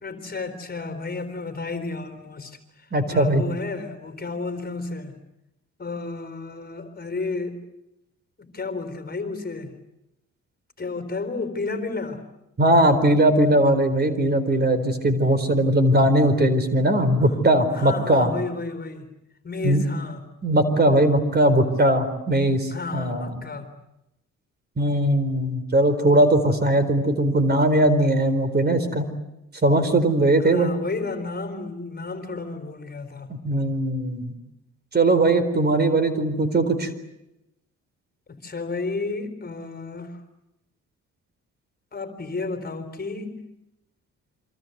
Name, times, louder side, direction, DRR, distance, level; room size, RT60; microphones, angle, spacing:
voice 1, 0.0-5.2 5.8-7.6 8.4-9.7 10.8-12.2 17.2-17.3 17.7-19.1 19.4-20.2 22.7-23.7 30.4-33.3 38.4-40.2 41.9-43.4, left 3 dB, 30° left, 8 dB, 4.0 m, -32 dB
voice 2, 2.9-3.4 12.6-18.3 19.6-19.8 20.4-23.4 24.8-29.0 29.6-30.7 33.3-34.3 34.9-36.9, right 1 dB, 35° right, 11 dB, 4.3 m, -20 dB
28.0 x 25.5 x 8.1 m, 0.88 s
cardioid pair, 90°, 30 cm